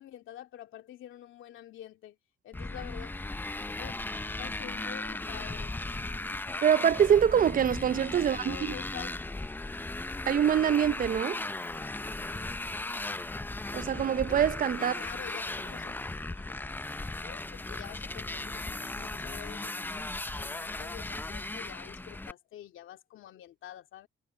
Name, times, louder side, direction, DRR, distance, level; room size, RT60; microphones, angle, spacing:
voice 1, 0.0-2.2 2.4-3.1 3.8-4.0 4.4-5.7 8.2-9.1 14.8-16.0 16.3-16.6 17.2-24.1, left 12 dB, 80° left, 2.7 m, -47 dB
Motorcycle, 2.5-22.3, left 2 dB, 10° left, 0.5 m, -37 dB
voice 2, 6.6-8.7 10.3-11.4 13.7-15.0, right 9 dB, 45° right, 0.6 m, -25 dB
cardioid pair, 90°, 20 cm